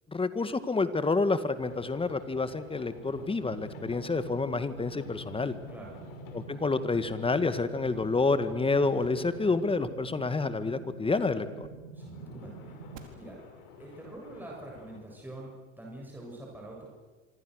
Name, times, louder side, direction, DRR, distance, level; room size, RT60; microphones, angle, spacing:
voice 1, 0.1-5.5 6.3-11.7, left 3 dB, 15° left, 12 dB, 2.0 m, -28 dB
sound 1, 1.6-9.8 12.0-15.0, left 6 dB, 65° left, 5.8 m, -50 dB
sound 2, 3.0-13.0, right 5 dB, 70° right, 4.4 m, -47 dB
voice 2, 5.7-6.0 11.9-12.8 13.1-13.4 13.8-16.9, right 1 dB, 5° right, -3 dB, 7.5 m, -45 dB
26.5 x 25.5 x 6.6 m, 1.4 s
hypercardioid pair, 90°, 40 cm